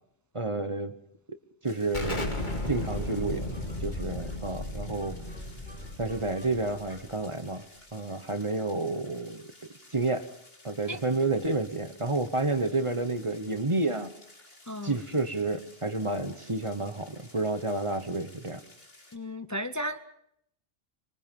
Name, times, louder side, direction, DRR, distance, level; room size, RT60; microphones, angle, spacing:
voice 1, 0.3-0.9 1.6-3.5 3.8-5.2 6.0-7.7 7.9-9.5 9.9-10.3 10.6-14.1 14.8-18.6, right 2 dB, 30° right, 9 dB, 1.2 m, -30 dB
sound 1, 1.6-19.2, left 2 dB, 70° left, 3.6 m, -55 dB
Explosion, 1.9-7.4, left 1 dB, 50° left, 2.9 m, -35 dB
sound 2, 3.1-4.6 5.0-7.2, right 1 dB, 10° right, 5.1 m, -53 dB
voice 2, 14.7-15.0 19.1-20.0, equal, 20° left, 9 dB, 0.8 m, -34 dB
25.0 x 22.5 x 5.5 m, 0.73 s
omnidirectional pair, 1.0 m